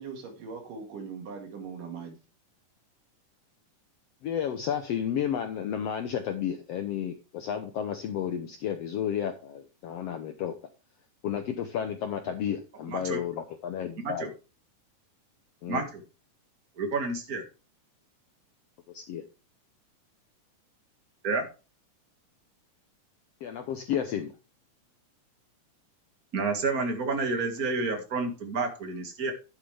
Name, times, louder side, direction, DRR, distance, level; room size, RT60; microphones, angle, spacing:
voice 1, 0.0-2.2, right 5 dB, 75° right, 3 dB, 3.8 m, -40 dB
voice 2, 4.2-10.5 11.2-14.3 15.6-15.8 18.9-19.2 23.4-24.3, left 9 dB, 70° left, 7 dB, 1.5 m, -32 dB
voice 3, 12.9-13.2 14.0-14.3 15.7-16.0 16.8-17.4 21.2-21.5 26.3-29.3, right 3 dB, 35° right, 4 dB, 1.8 m, -30 dB
11.0 x 8.7 x 3.3 m, 0.31 s
omnidirectional pair, 3.7 m